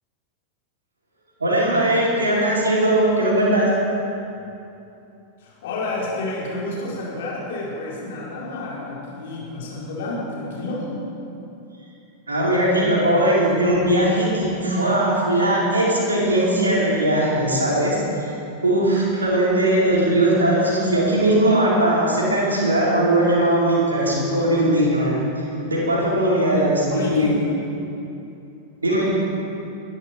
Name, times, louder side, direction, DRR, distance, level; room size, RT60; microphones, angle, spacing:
voice 1, 1.4-3.7 12.3-18.3 18.6-25.1 25.7-27.4 28.8-29.1, right 1 dB, 75° right, -6 dB, 4.6 m, -19 dB
voice 2, 5.4-10.9 26.9-27.3, left 2 dB, 55° left, -5 dB, 4.7 m, -30 dB
22.0 x 12.5 x 4.6 m, 2.7 s
figure-of-eight pair, 90°, 0 cm